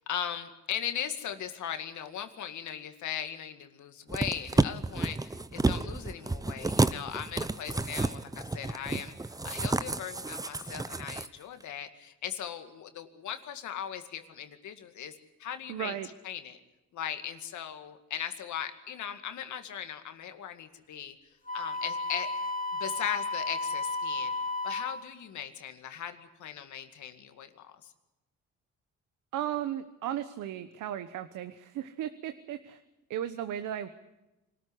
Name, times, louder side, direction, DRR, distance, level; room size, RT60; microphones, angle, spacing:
voice 1, 0.0-16.0 16.2-16.6 16.9-21.2 21.5-22.3 22.8-24.3 24.6-27.9, left 9 dB, 75° left, 8 dB, 2.2 m, -38 dB
sound 1, 4.1-11.3 11.6-11.7, right 3 dB, 10° right, 0.7 m, -30 dB
voice 2, 15.7-16.1 29.3-32.8 33.1-33.9, right 11 dB, 85° right, 10 dB, 1.2 m, -35 dB
Wind instrument woodwind instrument, 21.5-25.0, left 3 dB, 25° left, 2.3 m, -33 dB
25.0 x 13.5 x 9.9 m, 0.99 s
cardioid pair, 90°, 30 cm